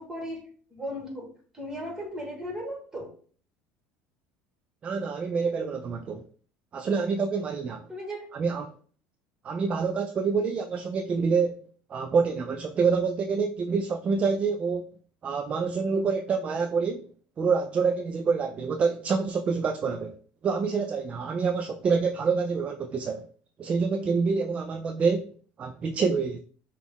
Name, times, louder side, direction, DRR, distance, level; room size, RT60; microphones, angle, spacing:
voice 1, 0.0-3.1 7.9-8.3, equal, 10° right, 1.7 m, -37 dB
voice 2, 4.8-6.2 6.7-7.9 8.3-8.7 9.4-11.6 11.9-14.9 15.2-17.1 17.4-20.2 20.4-23.3 23.6-25.3 25.6-26.4, right 5 dB, 30° right, 0.4 m, -27 dB
6.0 x 2.4 x 3.6 m
supercardioid pair, 115°, 4 cm